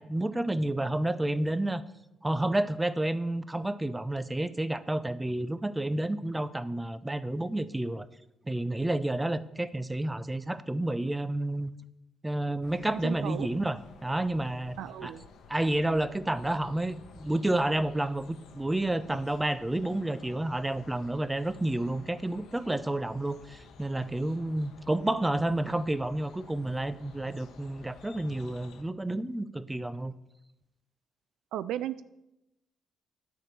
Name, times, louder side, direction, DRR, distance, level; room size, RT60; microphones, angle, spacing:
voice 1, 0.0-1.8 2.2-8.1 8.5-11.7 12.2-15.1 15.5-30.1, right 1 dB, 10° right, 14 dB, 0.5 m, -30 dB
sound 1, 12.6-28.8, left 5 dB, 80° left, 0.9 m, -53 dB
voice 2, 13.0-13.5 14.8-15.2 31.5-32.0, right 12 dB, 85° right, 14 dB, 0.4 m, -35 dB
9.6 x 4.5 x 7.5 m, 0.90 s
cardioid pair, 90°, 0 cm